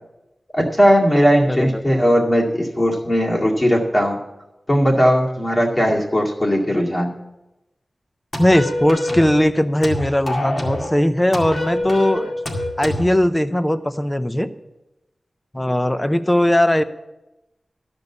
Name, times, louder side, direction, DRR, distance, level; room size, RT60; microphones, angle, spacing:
voice 1, 0.5-4.2 4.7-7.1, equal, 30° left, -2 dB, 2.2 m, -18 dB
voice 2, 1.5-1.8 8.4-12.3 12.8-14.5 15.5-16.8, left 1 dB, 15° left, 12 dB, 0.6 m, -18 dB
sound 1, 8.3-9.4 9.8-10.9 11.3-13.1, left 1 dB, 60° left, 2.1 m, -26 dB
12.5 x 5.3 x 8.3 m, 0.96 s
wide cardioid pair, 85°, 0 cm